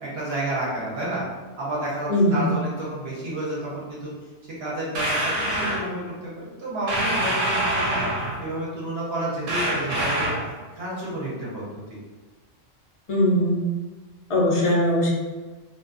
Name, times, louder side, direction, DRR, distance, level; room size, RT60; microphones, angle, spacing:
voice 1, 0.0-1.2 1.6-4.1 4.6-10.3 10.8-12.0, right 1 dB, 60° right, -6 dB, 0.9 m, -30 dB
voice 2, 2.1-2.5 13.1-13.7 14.3-15.1, left 1 dB, 45° left, -4 dB, 0.4 m, -20 dB
sound 1, 4.9-5.8 6.9-8.5 9.5-10.5, right 1 dB, 80° right, 1.1 m, -25 dB
2.5 x 2.3 x 2.4 m, 1.3 s
omnidirectional pair, 1.3 m